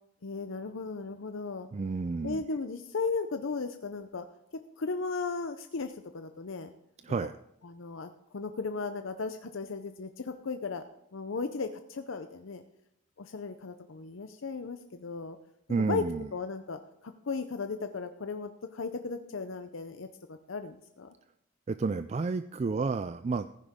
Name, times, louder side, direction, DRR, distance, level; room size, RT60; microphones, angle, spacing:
voice 1, 0.2-1.7 2.2-4.3 4.5-6.7 7.6-10.8 11.1-12.6 13.2-15.4 15.7-16.0 16.3-21.1, left 4 dB, 85° left, 8 dB, 0.7 m, -36 dB
voice 2, 1.7-2.4 7.0-7.3 15.7-16.3 21.7-23.5, right 4 dB, 35° right, 12 dB, 0.3 m, -31 dB
15.0 x 10.0 x 3.6 m, 0.79 s
head